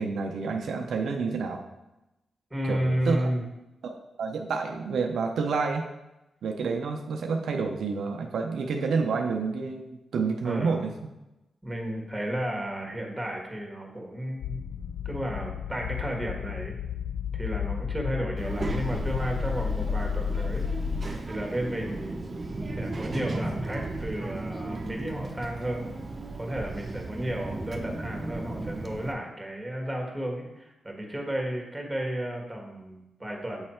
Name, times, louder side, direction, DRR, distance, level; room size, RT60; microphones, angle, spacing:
voice 1, 0.0-1.6 2.7-3.3 3.8-3.9 4.2-5.9 6.4-10.9, right 4 dB, 80° right, 3 dB, 0.5 m, -29 dB
voice 2, 2.5-3.4 10.4-10.9 11.6-14.6 15.0-16.7 17.3-20.7 21.2-22.4 22.8-25.9 26.4-33.6, right 1 dB, 10° right, 1 dB, 1.6 m, -33 dB
sound 1, 14.4-21.1, left 7 dB, 80° left, 0.3 m, -32 dB
Child speech kid speaking, 18.4-29.1, right 2 dB, 40° right, 0.8 m, -35 dB
8.0 x 3.2 x 4.3 m, 0.96 s
cardioid pair, 75°, 0 cm